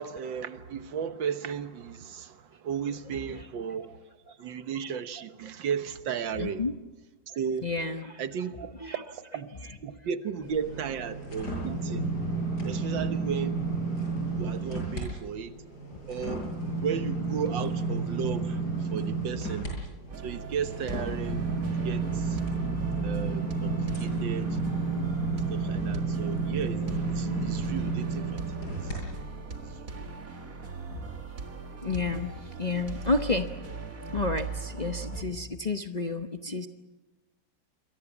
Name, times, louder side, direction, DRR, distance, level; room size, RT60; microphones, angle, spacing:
voice 1, 0.0-6.7 7.3-7.7 8.2-12.1 12.6-13.6 14.3-15.6 16.1-16.5 16.8-19.7 20.2-21.4 21.8-22.4 23.0-24.6 25.3-29.0 29.9-30.1, right 7 dB, 90° right, 1.9 m, -35 dB
voice 2, 6.4-6.7 7.6-8.2 8.8-9.0 14.9-15.0 19.3-19.4 22.3-22.6 25.5-25.6 26.2-26.3 27.2-27.8 29.5-29.7 30.9-31.1 31.8-33.5 34.1-36.7, left 3 dB, 35° left, 0.7 m, -31 dB
sound 1, 10.4-15.0 15.4-29.0 29.4-29.6, right 3 dB, 60° left, 8.1 m, -31 dB
sound 2, 20.1-35.2, right 4 dB, 50° right, 2.3 m, -39 dB
27.5 x 23.0 x 7.2 m
omnidirectional pair, 2.0 m